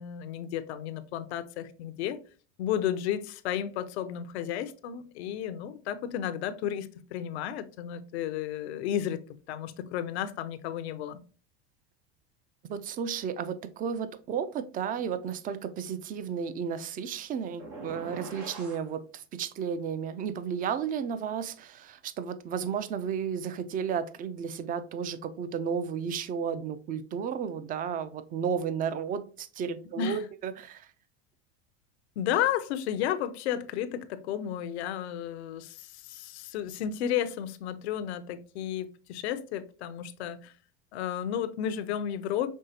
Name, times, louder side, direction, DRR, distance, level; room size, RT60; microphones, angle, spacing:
voice 1, 0.0-2.2 2.6-9.2 9.5-11.2 30.0-30.2 32.2-40.5 40.9-42.5, left 10 dB, 85° left, 0.6 m, -32 dB
voice 2, 12.6-30.9, right 7 dB, 25° right, 0.4 m, -33 dB
sound 1, 17.6-18.9, right 2 dB, 85° right, 1.7 m, -42 dB
5.4 x 3.2 x 2.7 m
supercardioid pair, 115°, 32 cm